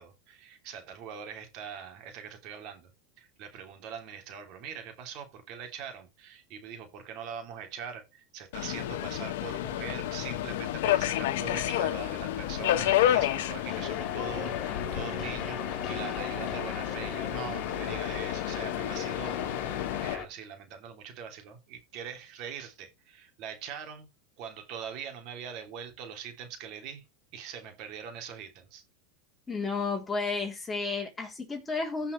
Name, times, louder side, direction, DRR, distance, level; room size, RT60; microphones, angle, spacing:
voice 1, 0.0-2.9 3.2-24.1 24.4-27.1 27.3-28.8, right 7 dB, 50° right, 3.0 m, -42 dB
Subway metro underground, 8.5-20.2, left 13 dB, 75° left, 1.2 m, -31 dB
sound 1, 11.8-20.3, left 6 dB, 35° left, 2.7 m, -38 dB
voice 2, 29.5-32.1, left 4 dB, 10° left, 3.3 m, -32 dB
16.5 x 5.6 x 3.2 m
supercardioid pair, 140°, 0 cm